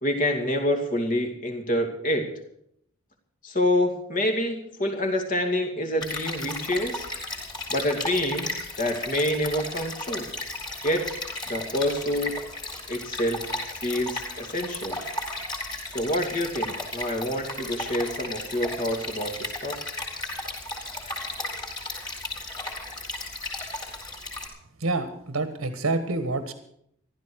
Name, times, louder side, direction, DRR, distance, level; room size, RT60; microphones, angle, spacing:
voice 1, 0.0-2.3 3.4-7.1 7.7-8.5 8.8-10.3 10.8-11.1 11.5-12.4 12.9-13.5 13.8-15.0 15.9-19.8, left 1 dB, 40° left, 4 dB, 2.5 m, -27 dB
Stream, 6.0-24.5, left 2 dB, 20° left, 4.1 m, -35 dB
voice 2, 24.8-26.5, right 3 dB, 90° right, 9 dB, 1.4 m, -27 dB
15.0 x 12.5 x 6.4 m, 0.73 s
head